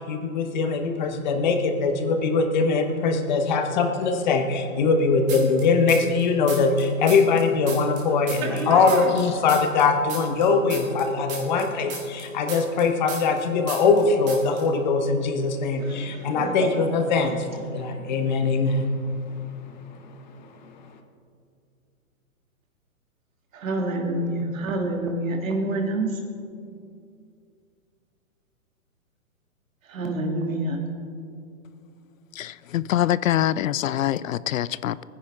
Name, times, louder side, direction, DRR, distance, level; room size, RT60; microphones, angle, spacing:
voice 1, 0.0-18.8, left 4 dB, 30° left, 6 dB, 1.0 m, -22 dB
sound 1, 5.3-6.2 6.5-9.2 9.5-13.4 13.7-14.0 14.3-14.6, right 4 dB, 15° right, 2.0 m, -35 dB
voice 2, 8.3-9.1 15.8-16.8 18.0-18.1 23.5-26.2 29.9-30.8, right 2 dB, 65° right, 2 dB, 2.6 m, -28 dB
voice 3, 32.4-35.0, left 11 dB, 65° left, 19 dB, 0.5 m, -24 dB
21.0 x 10.0 x 3.6 m, 2.4 s
hypercardioid pair, 160°, 43 cm